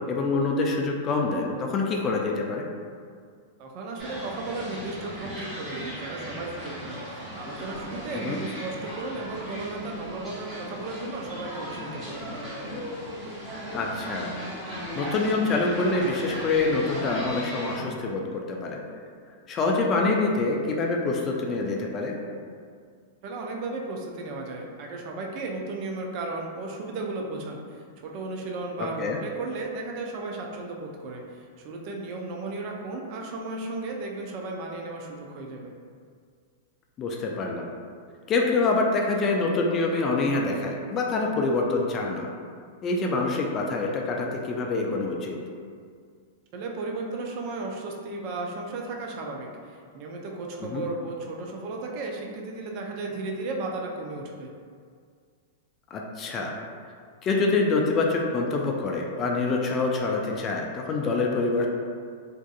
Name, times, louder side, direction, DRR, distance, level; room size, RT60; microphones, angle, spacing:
voice 1, 0.0-2.7 8.1-8.4 13.7-14.3 14.9-18.8 19.5-22.1 28.8-29.2 37.0-37.7 38.3-42.3 42.8-45.4 50.6-50.8 55.9-56.5 57.2-61.7, left 3 dB, 30° left, 0 dB, 0.3 m, -26 dB
voice 2, 3.6-12.5 23.2-35.7 46.5-54.5, right 2 dB, 50° right, 0 dB, 0.4 m, -35 dB
sound 1, 4.0-17.8, equal, 20° right, 1.0 m, -37 dB
2.5 x 2.4 x 2.3 m, 2.1 s
hypercardioid pair, 120°, 0 cm